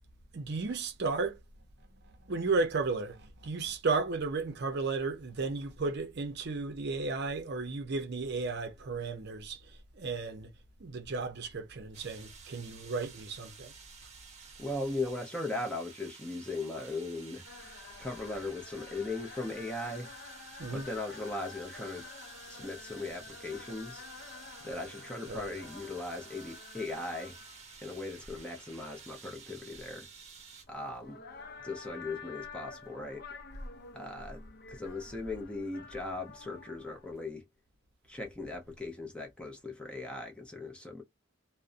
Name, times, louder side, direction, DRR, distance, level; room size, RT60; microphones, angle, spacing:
voice 1, 0.3-1.4 2.2-10.5 10.8-13.7 20.6-20.8 25.3-25.6, right 4 dB, 55° right, 0.6 m, -34 dB
sound 1, 11.9-30.6, right 5 dB, 35° right, 0.9 m, -52 dB
voice 2, 14.6-17.4 18.0-20.1 20.7-22.1 22.5-24.0 24.6-27.4 27.8-30.1 30.7-31.2 31.6-33.3 33.9-37.5 38.1-41.0, left 2 dB, 5° left, 0.6 m, -38 dB
sound 2, 17.4-37.2, left 5 dB, 50° left, 0.5 m, -50 dB
2.5 x 2.1 x 2.5 m
head